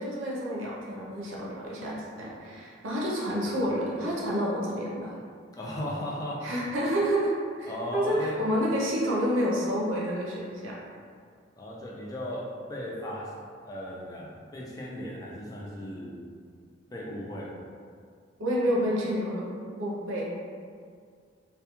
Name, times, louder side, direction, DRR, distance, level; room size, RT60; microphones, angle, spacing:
voice 1, 0.0-5.1 6.4-10.8 18.4-19.5 19.8-20.3, equal, 85° right, -4 dB, 0.5 m, -29 dB
voice 2, 5.6-6.5 7.7-8.4 11.6-13.3 13.6-16.2 16.9-17.5, left 1 dB, 20° left, -5 dB, 0.3 m, -36 dB
2.2 x 2.1 x 2.9 m, 2.1 s
head